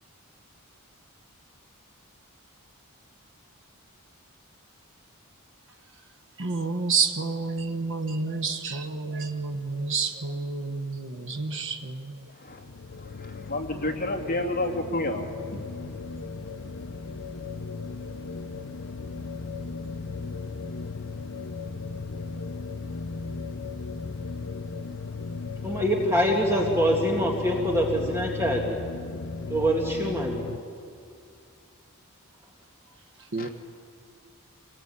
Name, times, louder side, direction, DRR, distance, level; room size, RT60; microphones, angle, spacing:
voice 1, 6.4-12.3 33.2-33.5, right 4 dB, 60° right, 6 dB, 1.1 m, -29 dB
sound 1, 12.5-30.6, left 4 dB, 60° left, 0.7 m, -36 dB
voice 2, 13.2-15.9 33.4-33.5, left 1 dB, 40° left, 1 dB, 2.7 m, -30 dB
voice 3, 25.6-28.8 29.5-30.5, equal, 10° right, -1 dB, 2.1 m, -24 dB
26.5 x 19.0 x 8.7 m, 2.3 s
head